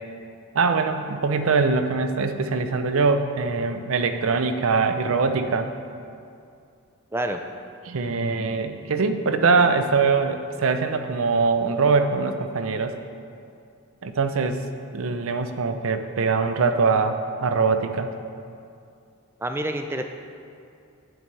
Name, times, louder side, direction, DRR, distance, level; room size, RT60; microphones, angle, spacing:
voice 1, 0.5-5.7 7.8-12.9 14.0-14.6 14.9-18.1, right 4 dB, 65° right, 8 dB, 0.5 m, -22 dB
voice 2, 19.4-20.0, right 1 dB, 10° right, 6 dB, 0.3 m, -27 dB
9.1 x 8.7 x 3.2 m, 2.5 s
head